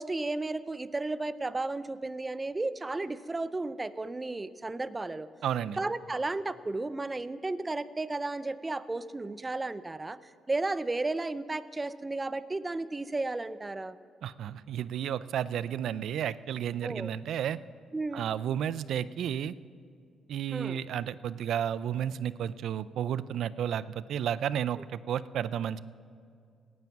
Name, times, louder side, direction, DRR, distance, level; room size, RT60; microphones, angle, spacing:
voice 1, 0.0-5.3 5.8-10.2 10.5-14.0 16.8-17.1 17.9-18.2 20.5-20.8, right 2 dB, 20° right, 15 dB, 0.5 m, -33 dB
voice 2, 5.4-5.8 14.2-17.6 18.1-19.5 20.3-25.8, right 9 dB, 70° right, 17 dB, 0.4 m, -32 dB
17.5 x 9.6 x 5.9 m, 2.3 s
cardioid pair, 90°, 0 cm